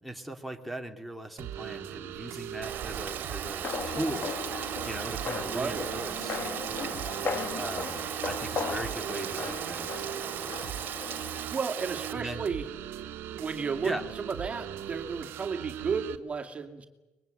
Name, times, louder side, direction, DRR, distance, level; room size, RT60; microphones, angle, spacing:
voice 1, 0.0-4.3 4.9-6.4 7.5-10.1 12.1-12.4 13.8-14.0, right 1 dB, ahead, 7 dB, 2.5 m, -38 dB
sound 1, 1.4-16.2, right 11 dB, 75° right, 1.5 m, -40 dB
Rain, 2.6-12.1, right 9 dB, 55° right, 2.0 m, -37 dB
sound 2, 3.6-11.4, left 5 dB, 50° left, 2.3 m, -37 dB
voice 2, 5.5-5.9 11.5-12.7 13.3-16.9, right 5 dB, 30° right, 5 dB, 2.4 m, -33 dB
23.5 x 21.5 x 9.1 m, 1.1 s
cardioid pair, 95°, 4 cm